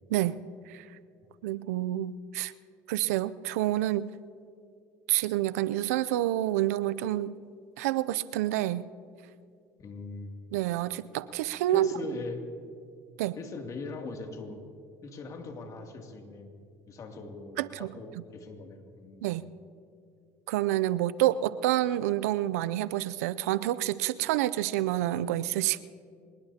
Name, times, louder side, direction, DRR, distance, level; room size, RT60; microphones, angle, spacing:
voice 1, 1.4-2.5 2.9-4.1 5.1-7.3 7.8-8.9 10.5-11.9 13.2-13.4 17.6-17.9 19.2-19.4 20.5-25.8, right 14 dB, 90° right, 16 dB, 0.4 m, -28 dB
voice 2, 9.8-10.3 11.7-12.4 13.4-14.6 15.0-16.5 16.9-19.3, left 3 dB, 45° left, 3 dB, 2.5 m, -41 dB
25.0 x 20.0 x 2.8 m, 2.3 s
supercardioid pair, 85°, 8 cm